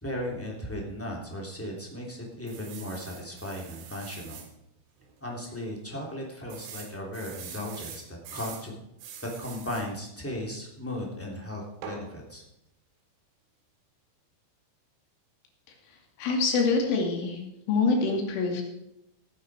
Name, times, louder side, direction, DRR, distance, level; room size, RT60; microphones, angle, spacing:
voice 1, 0.0-4.4 5.2-8.7 9.4-12.4, left 1 dB, 5° left, -2 dB, 2.0 m, -36 dB
sound 1, 2.5-4.5 5.0-5.1 5.4-5.5 6.5-8.7 9.0-9.9 11.8-12.1, right 7 dB, 90° right, 4.3 m, -44 dB
voice 2, 16.2-17.4 17.7-18.6, left 4 dB, 80° left, 1 dB, 5.0 m, -25 dB
18.5 x 9.2 x 4.9 m, 0.84 s
omnidirectional pair, 5.5 m